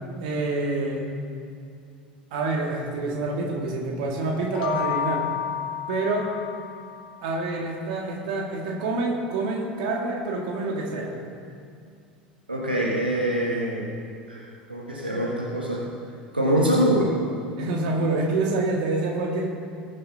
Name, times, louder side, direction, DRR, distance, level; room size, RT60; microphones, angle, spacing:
voice 1, 0.2-1.0 2.3-5.2 5.9-6.3 7.2-11.1 17.6-19.5, right 3 dB, 55° right, -1 dB, 2.2 m, -27 dB
sound 1, 4.4-7.1, left 9 dB, 55° left, 1.0 m, -31 dB
voice 2, 12.5-14.0 14.3-14.4 14.7-15.8 16.3-17.1, right 1 dB, 85° right, -5 dB, 1.6 m, -24 dB
20.5 x 7.6 x 2.9 m, 2.4 s
figure-of-eight pair, 75°, 5 cm